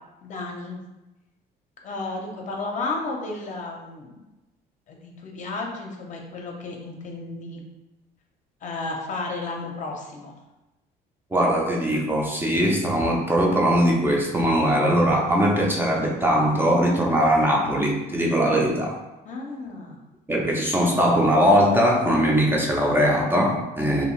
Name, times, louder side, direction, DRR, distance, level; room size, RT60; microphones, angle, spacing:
voice 1, 0.2-0.8 1.8-4.2 4.9-7.6 8.6-10.3 19.2-20.0, left 3 dB, 45° left, 1 dB, 0.6 m, -33 dB
voice 2, 11.3-19.0 20.3-24.0, equal, 15° right, -2 dB, 0.5 m, -20 dB
2.6 x 2.3 x 3.0 m, 1.0 s
cardioid pair, 110°, 17 cm